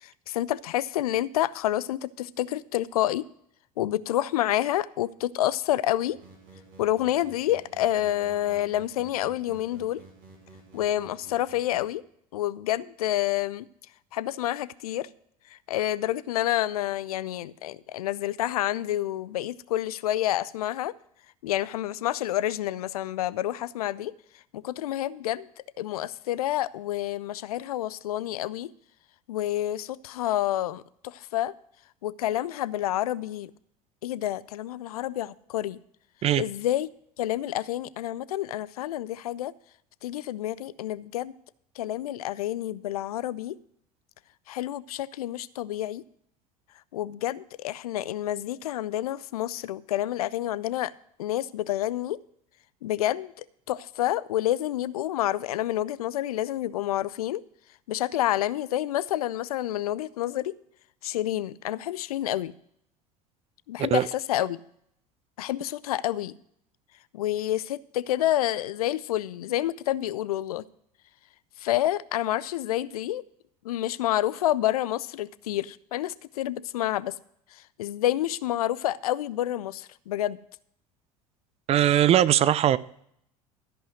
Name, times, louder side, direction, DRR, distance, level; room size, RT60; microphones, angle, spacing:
voice 1, 0.0-3.3 3.8-6.2 6.8-10.0 10.7-12.0 12.3-13.7 14.1-15.1 15.7-20.9 21.4-24.1 24.5-25.5 25.8-28.7 29.3-31.5 32.0-33.5 34.0-35.8 36.4-36.9 37.2-39.5 40.0-41.3 41.8-43.6 44.5-46.0 46.9-50.9 51.2-52.2 52.8-57.4 57.9-60.5 61.0-62.5 63.7-64.6 65.4-66.3 67.1-70.6 71.6-73.2 73.6-77.1 77.5-80.4, left 13 dB, 75° left, 0.4 m, -28 dB
sound 1, 6.1-12.0, right 3 dB, 55° right, 2.8 m, -52 dB
voice 2, 81.7-82.8, right 11 dB, 35° right, 0.5 m, -20 dB
13.5 x 5.6 x 6.1 m
figure-of-eight pair, 70°, 19 cm